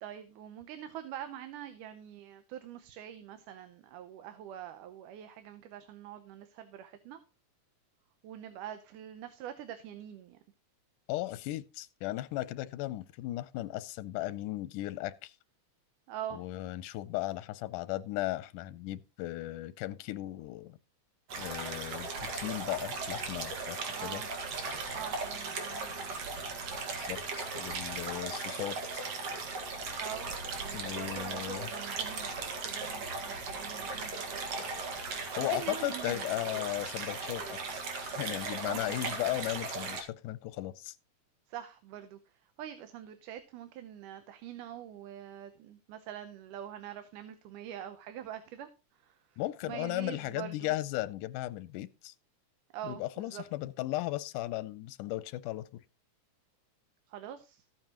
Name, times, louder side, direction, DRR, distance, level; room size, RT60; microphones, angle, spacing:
voice 1, 0.0-7.2 8.2-10.4 16.1-16.4 23.9-24.3 25.0-26.3 30.0-30.3 30.6-34.7 35.1-36.5 38.6-39.1 41.5-42.2 42.6-50.7 52.7-53.4 57.1-57.6, right 10 dB, 85° right, 2.4 m, -45 dB
voice 2, 11.1-15.3 16.3-20.8 21.4-24.2 26.9-29.1 30.7-31.7 35.4-37.6 38.0-41.0 49.4-52.1 52.8-55.8, left 16 dB, 90° left, 2.2 m, -36 dB
sound 1, 21.3-40.0, right 4 dB, 55° right, 2.7 m, -37 dB
14.5 x 9.0 x 3.0 m
omnidirectional pair, 3.6 m